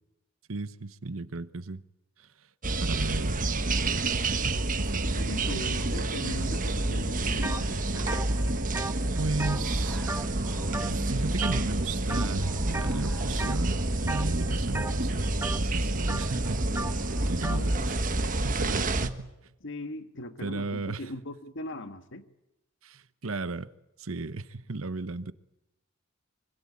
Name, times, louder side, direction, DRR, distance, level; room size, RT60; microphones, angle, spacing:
voice 1, 0.5-1.8 2.2-2.3 2.8-5.3 9.2-10.0 10.9-16.7 17.2-18.0 18.4-19.3 20.4-21.0 22.8-23.7 24.0-25.3, right 3 dB, 80° right, 1.1 m, -35 dB
sound 1, 2.6-19.1, right 2 dB, 40° right, 1.4 m, -28 dB
voice 2, 5.1-8.1 9.5-9.6 17.4-17.9 19.6-22.2, left 1 dB, 65° left, 1.7 m, -39 dB
sound 2, 7.4-7.6 7.9-10.5 10.7-11.1 11.4-11.8 12.1-12.9 13.4-13.7 14.0-17.7, right 2 dB, 10° right, 1.1 m, -36 dB
sound 3, 9.3-17.3, equal, 5° left, 5.1 m, -53 dB
25.5 x 24.0 x 8.6 m
head